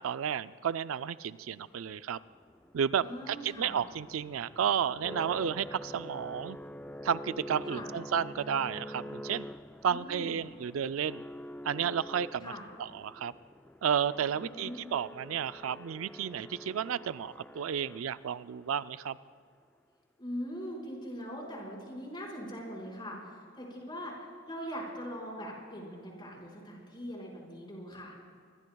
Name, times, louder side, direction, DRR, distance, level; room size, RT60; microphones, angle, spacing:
voice 1, 0.0-2.2 2.7-6.6 7.0-9.5 9.8-11.2 11.6-12.5 12.8-13.3 13.8-19.2, right 8 dB, 90° right, 14 dB, 0.4 m, -32 dB
sound 1, 2.2-18.4, equal, 5° left, 0.3 m, -46 dB
voice 2, 3.0-3.8 7.7-7.9 9.9-10.3 12.4-12.7 14.3-14.9 20.2-24.1 24.5-28.2, equal, 25° left, -3 dB, 5.0 m, -41 dB
26.0 x 23.0 x 2.3 m, 2.2 s
head